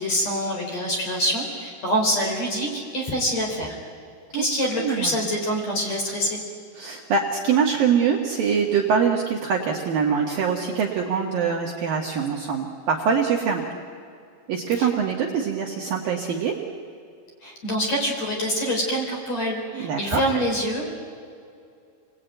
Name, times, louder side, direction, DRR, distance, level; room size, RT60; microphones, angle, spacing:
voice 1, 0.0-3.7 4.3-6.4 14.8-14.9 17.4-21.0, equal, 35° left, 0 dB, 4.8 m, -25 dB
voice 2, 4.7-5.1 6.8-13.7 14.5-16.5 19.7-20.2, right 6 dB, 60° right, -1 dB, 2.7 m, -24 dB
29.0 x 20.5 x 9.2 m, 2.4 s
omnidirectional pair, 5.8 m